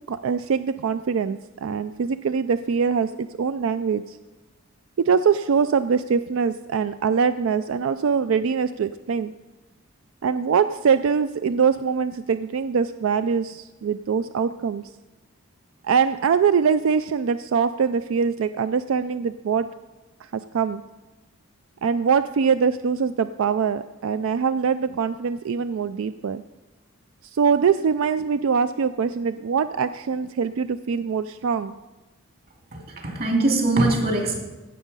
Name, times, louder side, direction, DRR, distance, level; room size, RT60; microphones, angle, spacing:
voice 1, 0.1-4.2 5.1-9.3 10.2-14.8 15.8-19.7 20.2-20.8 21.8-26.4 27.3-31.7, right 6 dB, 90° right, 12 dB, 0.4 m, -23 dB
voice 2, 32.7-34.4, right 2 dB, 50° right, 1 dB, 2.4 m, -22 dB
16.0 x 7.2 x 5.4 m, 1.1 s
head